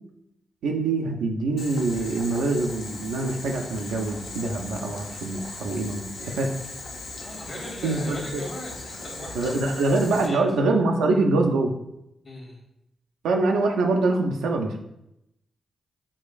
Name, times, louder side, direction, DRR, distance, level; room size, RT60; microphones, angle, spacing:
voice 1, 0.6-6.5 7.8-8.4 9.3-11.7 13.2-14.8, right 3 dB, 85° right, 2 dB, 0.3 m, -24 dB
Boiling, 1.6-10.3, left 2 dB, 85° left, 0.5 m, -39 dB
voice 2, 7.2-10.4 12.2-12.6, left 1 dB, 50° left, -1 dB, 1.2 m, -39 dB
4.8 x 2.5 x 2.3 m, 0.84 s
supercardioid pair, 40°, 0 cm